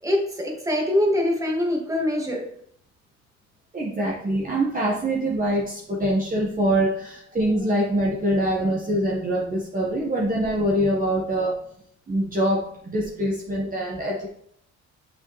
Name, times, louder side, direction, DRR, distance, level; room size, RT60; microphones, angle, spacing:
voice 1, 0.0-2.4, left 1 dB, 10° right, -1 dB, 2.1 m, -23 dB
voice 2, 3.7-11.6 12.1-14.3, right 1 dB, 30° right, -4 dB, 1.6 m, -24 dB
6.7 x 5.9 x 3.3 m, 0.65 s
cardioid pair, 90°, 30 cm